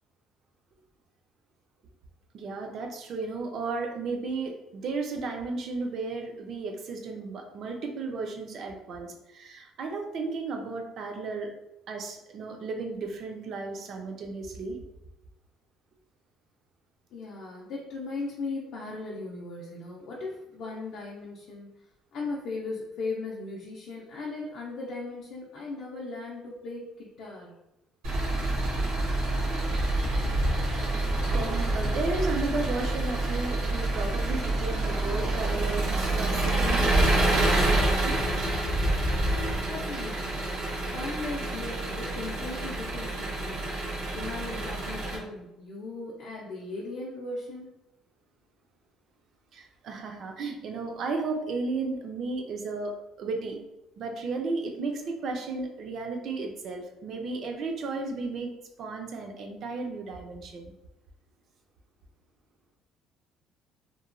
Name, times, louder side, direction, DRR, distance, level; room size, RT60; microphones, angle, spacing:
voice 1, 2.3-11.5 11.9-14.8 31.2-37.1 37.4-38.2 49.5-53.6 54.0-60.7, right 3 dB, 45° right, 3 dB, 0.4 m, -34 dB
voice 2, 17.1-21.7 22.1-27.5 39.3-40.2 40.9-43.7 44.1-47.7, left 3 dB, 55° left, -3 dB, 0.4 m, -37 dB
Engine, 28.0-45.2, right 2 dB, 85° right, 1.0 m, -27 dB
2.9 x 2.1 x 2.4 m, 0.92 s
cardioid pair, 175°, 0 cm